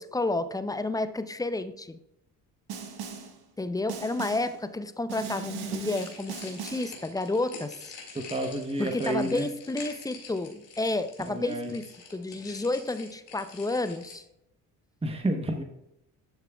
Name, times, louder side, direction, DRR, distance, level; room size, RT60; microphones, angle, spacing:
voice 1, 0.0-2.0 3.6-7.8 8.8-14.3, left 2 dB, 10° left, 11 dB, 0.5 m, -31 dB
Snare drum, 2.7-3.4 3.9-4.6 5.1-7.0, right 6 dB, 65° right, 1.3 m, -38 dB
sound 1, 5.9-14.1, left 5 dB, 70° left, 2.2 m, -46 dB
voice 2, 8.2-9.4 11.3-11.7 15.0-15.6, right 1 dB, 15° right, 4 dB, 1.0 m, -30 dB
11.5 x 6.6 x 2.3 m, 0.84 s
hypercardioid pair, 55°, 42 cm